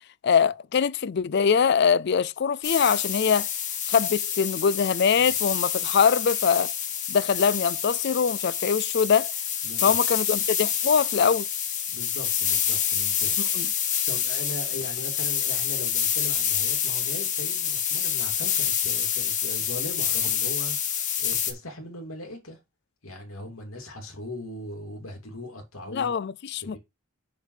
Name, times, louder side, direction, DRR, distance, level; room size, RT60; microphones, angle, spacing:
voice 1, 0.2-3.5 3.9-6.7 7.1-9.3 9.8-11.5 13.4-13.7 25.9-26.8, left 6 dB, 50° left, 0.4 m, -23 dB
sound 1, 2.6-21.5, left 8 dB, 35° left, 1.3 m, -27 dB
voice 2, 9.6-9.9 11.9-13.8 14.1-22.6 23.0-26.1 26.6-26.8, left 1 dB, 75° left, 2.9 m, -39 dB
6.6 x 5.4 x 5.0 m
head